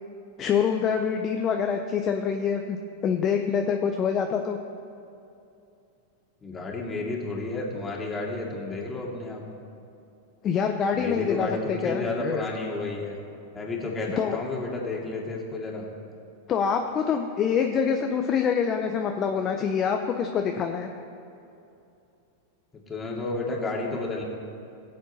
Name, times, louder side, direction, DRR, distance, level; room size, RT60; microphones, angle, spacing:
voice 1, 0.4-4.6 10.4-12.4 14.2-14.4 16.5-20.9, left 7 dB, 35° left, 4 dB, 0.7 m, -26 dB
voice 2, 6.4-9.5 10.9-13.2 13.5-15.9 22.9-24.2, left 3 dB, 20° left, -2 dB, 2.4 m, -31 dB
17.0 x 7.6 x 4.2 m, 2.6 s
hypercardioid pair, 105°, 0 cm